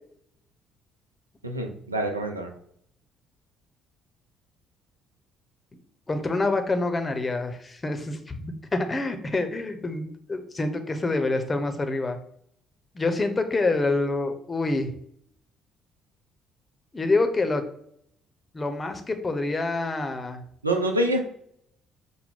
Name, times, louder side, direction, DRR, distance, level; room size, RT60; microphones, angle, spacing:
voice 1, 1.4-2.5 20.6-21.2, right 1 dB, 85° right, 4 dB, 0.4 m, -26 dB
voice 2, 6.1-8.5 8.7-12.2 12.9-14.9 16.9-17.6 18.5-20.4, left 2 dB, 25° left, 7 dB, 0.7 m, -26 dB
5.8 x 2.1 x 3.6 m, 0.68 s
figure-of-eight pair, 45°, 0 cm